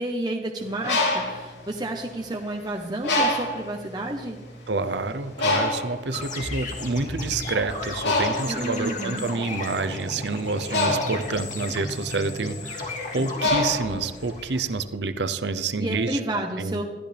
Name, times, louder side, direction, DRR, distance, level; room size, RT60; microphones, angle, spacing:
voice 1, 0.0-4.4 8.5-9.3 15.8-16.8, right 1 dB, 25° right, 1 dB, 1.0 m, -30 dB
Bird, 0.6-2.5 3.0-3.7 4.4-4.5 4.8-14.5, left 2 dB, 80° left, 3.3 m, -27 dB
voice 2, 4.7-16.2 16.6-16.8, right 3 dB, 80° right, 11 dB, 0.8 m, -28 dB
sound 1, 6.1-14.8, left 2 dB, 45° left, 2.5 m, -34 dB
21.0 x 14.0 x 3.4 m, 1.4 s
head